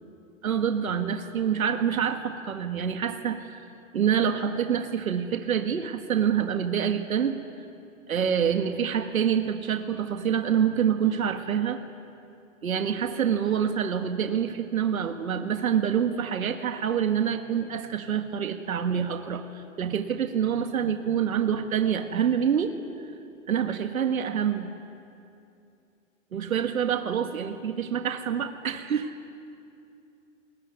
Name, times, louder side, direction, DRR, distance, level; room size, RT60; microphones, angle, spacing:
voice 1, 0.4-3.7 3.9-7.3 8.1-11.8 12.6-22.8 23.5-24.7 26.3-29.1, right 8 dB, 90° right, 6 dB, 1.9 m, -26 dB
27.0 x 21.5 x 9.6 m, 2.6 s
hypercardioid pair, 170°, 40 cm